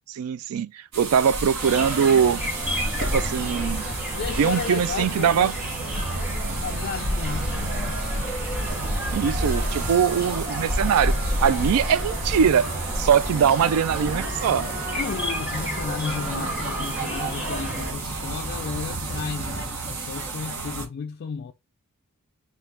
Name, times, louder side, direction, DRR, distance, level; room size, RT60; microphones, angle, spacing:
voice 1, 0.1-2.4 3.1-3.9 4.4-5.5 9.1-11.1 11.4-12.7 13.0-14.7, right 7 dB, 75° right, 0.3 m, -22 dB
sound 1, 0.9-20.9, right 2 dB, 60° right, 1.1 m, -30 dB
sound 2, 1.6-17.9, equal, 5° right, 1.3 m, -33 dB
voice 2, 4.1-5.6 6.1-8.0 11.5-11.7 14.9-21.5, left 6 dB, 45° left, 0.3 m, -34 dB
sound 3, 5.3-19.7, right 1 dB, 35° right, 0.8 m, -39 dB
4.4 x 2.3 x 3.5 m
head